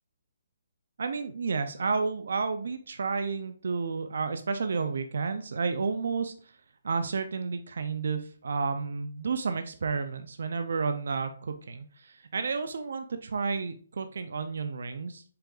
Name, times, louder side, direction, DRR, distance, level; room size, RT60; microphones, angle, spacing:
voice 1, 1.0-6.3 6.8-15.2, right 4 dB, 70° right, 8 dB, 0.6 m, -31 dB
5.7 x 3.8 x 2.5 m, 0.43 s
hypercardioid pair, 155°, 0 cm